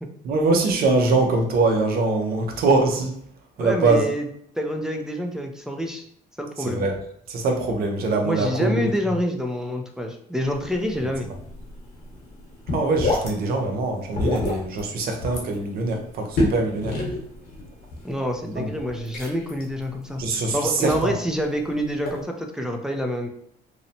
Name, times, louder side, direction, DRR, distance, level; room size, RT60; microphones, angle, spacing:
voice 1, 0.2-3.2 3.6-4.1 6.6-6.9 7.3-8.9 12.7-17.0 18.6-18.7 20.2-21.1, right 3 dB, 65° right, 3 dB, 0.7 m, -23 dB
voice 2, 3.6-4.3 4.6-6.0 6.4-6.8 8.2-11.3 18.0-20.2 20.5-23.3, equal, 5° right, 2 dB, 0.4 m, -27 dB
sound 1, 10.4-22.2, left 2 dB, 60° left, 1.0 m, -31 dB
2.8 x 2.0 x 2.6 m, 0.68 s
cardioid pair, 110°, 17 cm